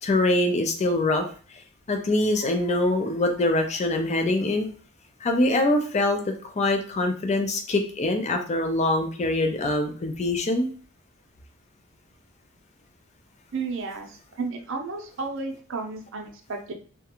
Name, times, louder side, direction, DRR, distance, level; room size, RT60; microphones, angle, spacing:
voice 1, 0.0-1.2 1.9-4.7 5.2-10.7, left 2 dB, 35° left, 5 dB, 0.4 m, -24 dB
voice 2, 13.5-16.7, right 4 dB, 65° right, 3 dB, 0.6 m, -33 dB
2.4 x 2.2 x 2.9 m, 0.41 s
head